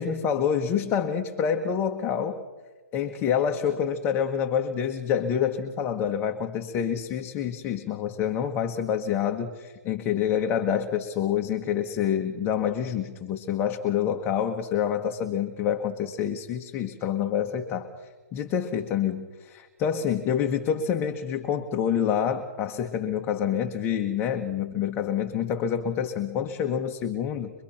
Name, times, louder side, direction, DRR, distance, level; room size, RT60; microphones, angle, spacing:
voice 1, 0.0-2.4 2.9-27.5, left 8 dB, 25° left, 4 dB, 1.5 m, -27 dB
24.5 x 23.5 x 5.9 m, 1.3 s
hypercardioid pair, 135°, 9 cm